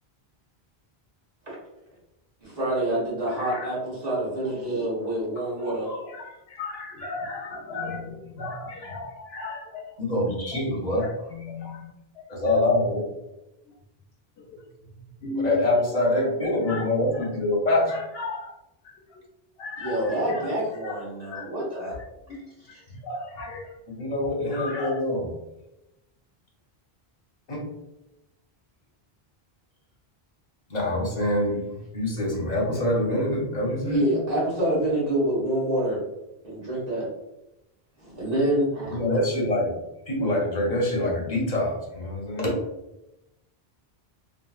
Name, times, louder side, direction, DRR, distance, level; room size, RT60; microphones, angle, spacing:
voice 1, 2.4-5.9 19.8-22.0 33.8-36.0 36.4-37.1 38.0-39.0, right 1 dB, 40° right, -7 dB, 1.3 m, -26 dB
voice 2, 3.3-3.7 5.4-9.8 10.5-10.6 10.9-12.3 12.6-12.7 14.4-14.7 15.2-16.2 16.7-16.8 17.1-17.3 17.9-18.5 18.8-19.2 19.6-20.6 20.8-21.5 22.4-23.7 24.3-25.0, left 3 dB, 80° left, 0 dB, 0.8 m, -36 dB
voice 3, 10.0-11.0 12.3-13.1 15.4-18.0 23.9-25.3 27.5-27.6 30.7-31.6 31.9-34.0 38.9-39.7 40.1-42.6, left 1 dB, 45° left, -2 dB, 0.8 m, -25 dB
3.0 x 2.6 x 2.3 m, 0.92 s
omnidirectional pair, 1.0 m